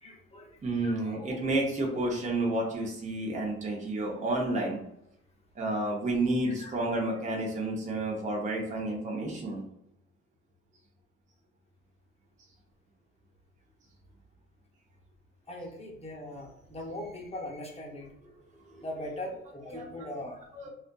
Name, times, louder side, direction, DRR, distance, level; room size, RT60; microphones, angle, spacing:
voice 1, 0.0-0.5 0.8-1.2 6.4-7.0 15.5-18.1 18.8-20.4, left 1 dB, 20° left, -1 dB, 0.8 m, -40 dB
voice 2, 0.6-4.8 5.6-9.6 18.6-18.8 19.0-19.1 19.7-20.1 20.5-20.7, right 2 dB, 25° right, -2 dB, 0.6 m, -30 dB
2.4 x 2.4 x 2.2 m, 0.82 s
cardioid pair, 90°, 30 cm